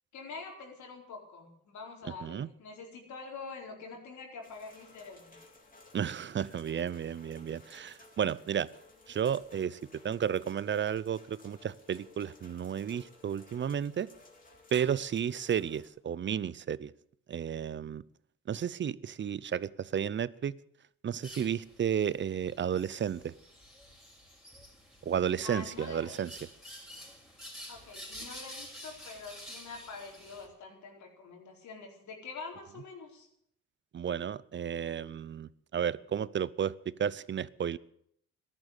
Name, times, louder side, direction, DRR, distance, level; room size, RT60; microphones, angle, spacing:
voice 1, 0.1-5.4 25.4-26.1 27.7-33.3, left 4 dB, 70° left, 0 dB, 4.3 m, -45 dB
sound 1, 4.4-15.9, left 3 dB, 30° left, 3.3 m, -57 dB
voice 2, 5.9-8.7 9.1-9.8 10.0-14.1 14.7-16.9 17.3-18.0 18.5-20.5 21.0-23.3 25.0-26.3 33.9-37.8, right 8 dB, 40° right, 21 dB, 0.6 m, -32 dB
sound 2, 21.2-30.5, equal, ahead, 5.3 m, -49 dB
13.5 x 11.0 x 8.3 m, 0.70 s
cardioid pair, 90°, 30 cm